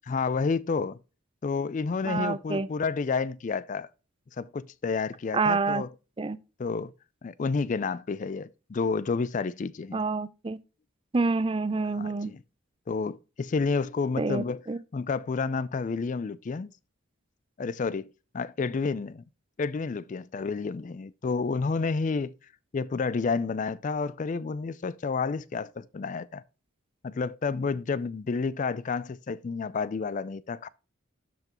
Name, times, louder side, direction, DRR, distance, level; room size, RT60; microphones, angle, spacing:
voice 1, 0.1-1.0 1.4-3.9 4.4-5.9 6.6-6.9 7.2-10.0 12.0-12.4 12.9-14.6 14.9-16.7 17.6-19.2 19.6-22.3 22.7-26.4 27.0-30.7, left 4 dB, 35° left, 0.3 m, -30 dB
voice 2, 2.0-2.7 5.3-5.8 6.2-6.4 9.9-10.6 11.1-12.3 14.2-14.8, right 3 dB, 25° right, 0.4 m, -27 dB
12.0 x 5.9 x 3.0 m
head